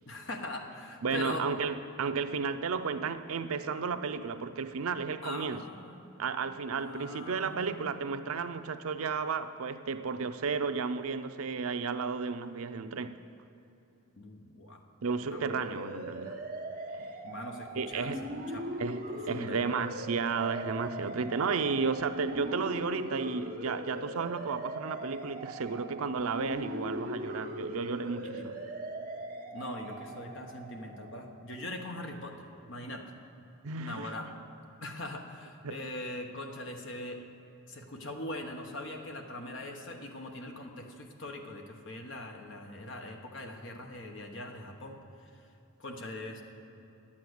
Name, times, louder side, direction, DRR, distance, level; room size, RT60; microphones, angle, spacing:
voice 1, 0.0-1.5 5.2-6.0 6.8-8.1 14.2-14.8 15.2-15.7 17.2-18.2 18.5-18.7 19.1-19.6 28.2-28.4 29.5-33.1 33.8-34.3 34.8-37.2 37.7-45.5 45.8-46.4, left 1 dB, 60° left, 1.2 m, -42 dB
voice 2, 1.0-5.6 6.2-13.2 15.0-16.4 17.8-18.2 18.8-28.6 33.6-34.1 35.6-35.8, right 5 dB, 90° right, 0.6 m, -33 dB
sound 1, 15.3-31.7, equal, 40° right, 1.3 m, -40 dB
10.5 x 8.6 x 7.9 m
head